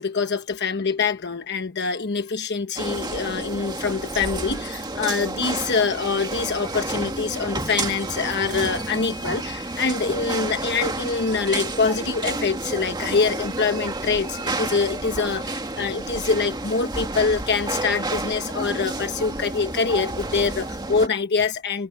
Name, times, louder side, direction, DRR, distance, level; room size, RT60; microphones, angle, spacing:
voice 1, 0.0-21.9, left 5 dB, 50° left, 1.1 m, -25 dB
sound 1, 2.8-21.1, right 2 dB, 20° right, 2.0 m, -30 dB
head